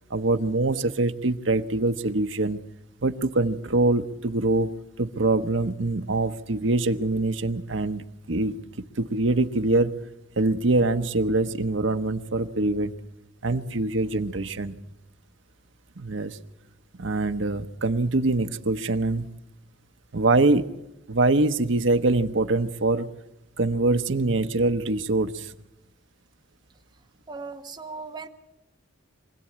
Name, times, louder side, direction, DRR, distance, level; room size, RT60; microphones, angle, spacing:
voice 1, 0.1-2.6 3.0-8.6 9.0-9.9 10.4-12.9 13.4-14.7 16.0-16.4 17.0-19.3 20.1-20.6 21.1-23.1 23.6-25.5, right 2 dB, 75° right, 8 dB, 1.0 m, -24 dB
voice 2, 27.3-28.3, right 4 dB, 25° right, 4 dB, 1.5 m, -37 dB
24.5 x 17.0 x 8.6 m, 0.91 s
head